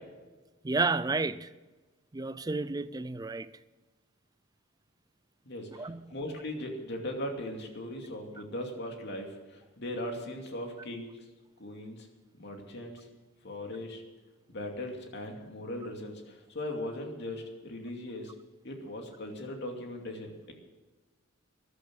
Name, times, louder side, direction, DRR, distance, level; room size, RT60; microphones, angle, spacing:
voice 1, 0.6-1.5 2.1-3.5 5.8-6.1, right 3 dB, 20° right, 0.4 m, -31 dB
voice 2, 6.1-9.3 9.8-11.1 11.6-12.0 12.4-12.9 13.4-14.0 14.5-16.1 16.5-18.2 18.6-20.5, left 1 dB, 55° left, 2.6 m, -38 dB
14.5 x 11.5 x 6.3 m
head